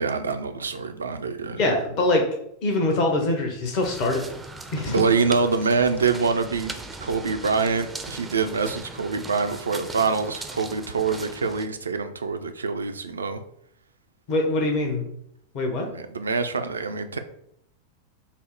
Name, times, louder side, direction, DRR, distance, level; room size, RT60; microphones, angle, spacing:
voice 1, 0.0-1.6 4.9-13.4 15.9-17.2, right 4 dB, 75° right, 8 dB, 0.4 m, -25 dB
voice 2, 1.5-2.2 2.6-4.3 4.7-4.9 14.3-15.1 15.5-15.9, left 2 dB, 40° left, 2 dB, 0.9 m, -23 dB
sound 1, 3.8-11.7, right 2 dB, 10° right, 0.5 m, -39 dB
5.6 x 2.0 x 4.5 m, 0.73 s
figure-of-eight pair, 90°, 0 cm